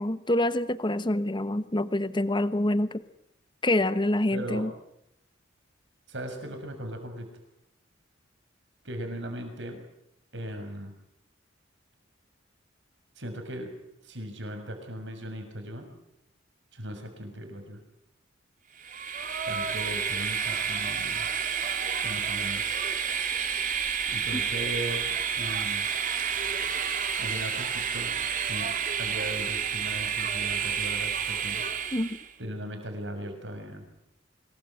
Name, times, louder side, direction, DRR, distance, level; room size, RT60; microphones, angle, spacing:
voice 1, 0.0-3.0 3.6-4.7 24.3-24.4 31.9-32.2, left 1 dB, 25° left, 13 dB, 1.1 m, -26 dB
voice 2, 4.3-4.7 6.1-7.3 8.8-9.8 10.3-11.0 13.2-13.7 14.0-15.9 16.7-17.8 19.5-21.3 22.0-22.6 24.1-25.9 27.2-28.1 28.4-31.6 32.4-33.8, equal, 65° right, 6 dB, 6.5 m, -38 dB
Train, 18.8-32.3, right 7 dB, 45° right, 2.9 m, -30 dB
25.5 x 20.5 x 8.8 m, 0.79 s
head